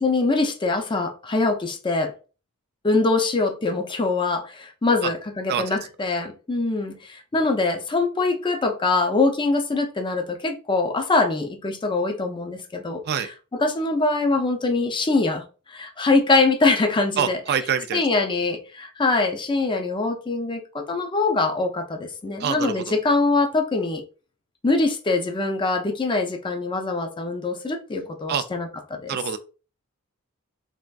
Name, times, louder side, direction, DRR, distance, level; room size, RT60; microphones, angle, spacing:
voice 1, 0.0-2.1 2.8-13.0 13.5-17.4 17.9-24.0 24.6-29.2, left 3 dB, 20° left, 0.4 m, -23 dB
voice 2, 17.2-18.0 22.4-23.0 28.3-28.4 29.1-29.4, right 8 dB, 50° right, 0.3 m, -25 dB
3.4 x 2.4 x 2.2 m
head